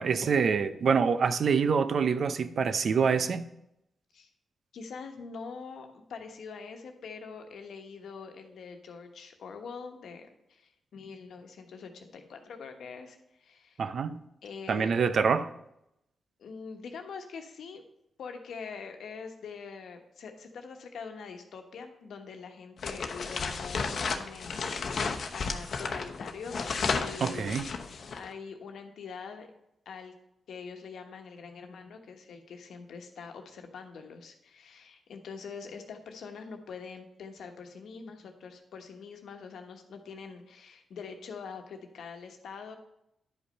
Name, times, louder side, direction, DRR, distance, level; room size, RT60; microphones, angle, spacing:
voice 1, 0.0-3.5 13.8-14.2 14.7-15.5 27.2-27.7, right 6 dB, 65° right, 0.6 m, -26 dB
voice 2, 4.7-13.8 14.4-14.9 16.4-17.8 18.2-26.6 26.9-27.6 27.8-29.5 29.8-30.1 30.5-42.8, left 5 dB, 80° left, 1.2 m, -44 dB
sound 1, 22.8-28.3, left 5 dB, 65° left, 0.8 m, -33 dB
10.5 x 5.3 x 5.5 m
cardioid pair, 60°, 0 cm